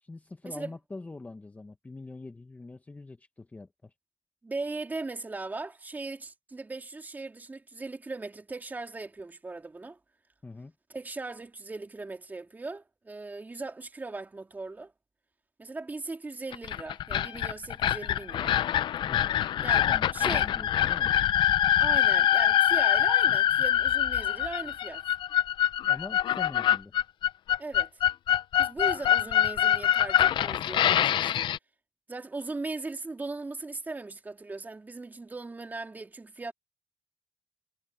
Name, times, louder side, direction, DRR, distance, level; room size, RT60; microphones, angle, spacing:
voice 1, 0.0-3.9 10.4-10.7 19.0-19.3 19.7-21.1 25.9-26.9, left 3 dB, 20° left, 1.0 m, -43 dB
voice 2, 4.4-10.0 10.9-14.9 15.6-18.6 19.6-20.5 21.8-25.0 27.6-27.9 28.6-31.5 32.1-36.5, right 3 dB, 20° right, 2.9 m, -38 dB
sound 1, 16.5-31.6, left 11 dB, 70° left, 0.6 m, -24 dB
cardioid pair, 125°, 8 cm